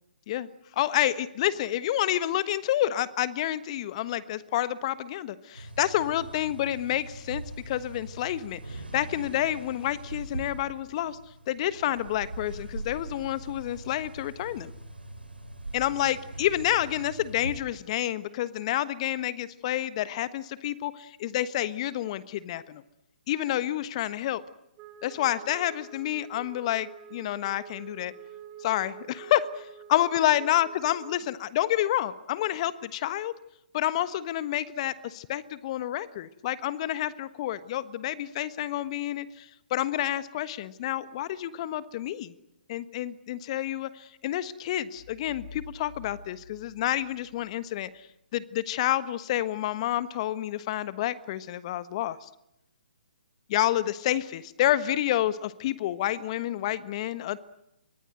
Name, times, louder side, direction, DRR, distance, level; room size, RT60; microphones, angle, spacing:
voice 1, 0.7-11.2 11.5-14.7 15.7-22.8 23.3-24.4 25.0-28.1 28.6-33.3 33.7-42.3 42.7-47.9 48.3-52.3 53.5-57.4, left 13 dB, 40° left, 15 dB, 1.3 m, -29 dB
sound 1, 5.5-17.6, right 2 dB, 85° right, 5.3 m, -42 dB
Wind instrument woodwind instrument, 24.8-31.2, right 8 dB, 25° right, 3.0 m, -47 dB
sound 2, 45.0-47.6, left 3 dB, 55° left, 7.3 m, -48 dB
29.0 x 23.0 x 7.9 m, 0.85 s
figure-of-eight pair, 135°, 5 cm